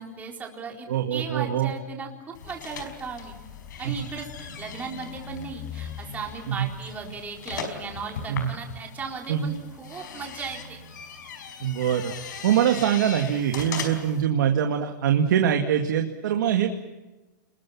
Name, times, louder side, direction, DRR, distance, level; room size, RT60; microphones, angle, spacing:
voice 1, 0.0-3.4 3.8-10.8, right 5 dB, 15° right, 1 dB, 4.2 m, -37 dB
voice 2, 0.9-1.7 3.8-3.9 6.5-6.7 8.3-8.5 9.3-9.5 11.6-12.1 12.4-16.9, right 9 dB, 70° right, 4 dB, 2.2 m, -23 dB
sound 1, 2.3-14.2, left 6 dB, 75° left, 5.1 m, -39 dB
29.5 x 21.5 x 7.3 m, 1.1 s
hypercardioid pair, 150°, 10 cm